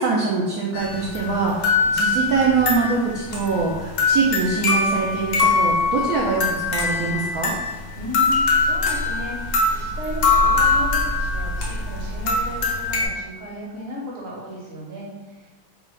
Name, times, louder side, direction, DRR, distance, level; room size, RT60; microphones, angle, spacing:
voice 1, 0.0-7.5, right 4 dB, 70° right, -4 dB, 1.0 m, -23 dB
sound 1, 0.7-13.1, left 3 dB, 60° left, 1.0 m, -22 dB
voice 2, 7.7-15.5, equal, 45° right, -4 dB, 0.9 m, -35 dB
4.5 x 2.4 x 3.2 m, 1.2 s
omnidirectional pair, 1.9 m